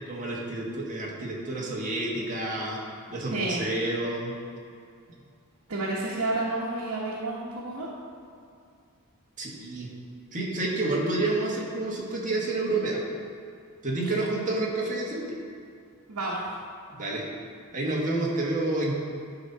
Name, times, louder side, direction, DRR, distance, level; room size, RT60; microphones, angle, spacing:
voice 1, 0.1-2.8 3.1-4.3 9.4-9.9 10.3-13.0 13.8-15.2 16.9-17.2 17.7-19.0, right 2 dB, 35° right, -3 dB, 1.6 m, -29 dB
voice 2, 3.3-3.7 5.7-7.9 14.0-14.1 16.1-16.5, right 2 dB, 85° right, -6 dB, 1.2 m, -30 dB
11.0 x 4.1 x 5.6 m, 2.3 s
head